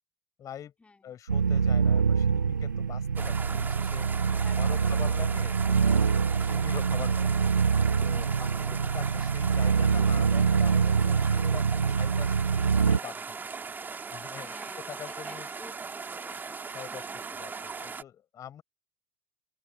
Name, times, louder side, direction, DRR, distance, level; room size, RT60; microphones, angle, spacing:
voice 1, 0.4-0.7 1.0-4.1 4.5-6.1 6.3-7.4 8.0-13.4 14.1-15.5 16.7-18.6, left 10 dB, 35° left, 5.6 m, -44 dB
sound 1, 1.3-13.0, right 6 dB, 85° right, 0.8 m, -25 dB
sound 2, 3.2-18.0, right 5 dB, 20° right, 2.7 m, -39 dB
voice 2, 4.4-5.4 8.2-8.7 14.4-16.6 16.9-17.5, left 3 dB, 15° left, 4.5 m, -53 dB
open air
figure-of-eight pair, 80°, 10 cm